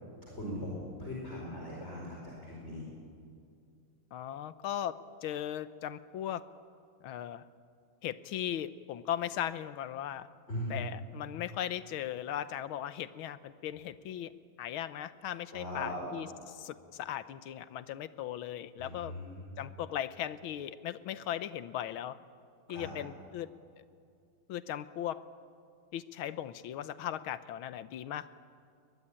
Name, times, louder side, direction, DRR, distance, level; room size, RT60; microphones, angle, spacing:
voice 1, 0.2-0.7 1.0-2.9 10.5-10.8 15.5-16.1 18.8-19.4 22.7-22.9, equal, 30° left, -3 dB, 5.1 m, -39 dB
voice 2, 4.1-6.4 7.0-7.4 8.0-10.3 10.7-14.3 14.6-19.1 19.6-22.2 22.7-23.5 24.5-25.2 25.9-28.3, left 11 dB, 75° left, 14 dB, 1.6 m, -38 dB
22.0 x 21.5 x 9.9 m, 2.3 s
omnidirectional pair, 2.4 m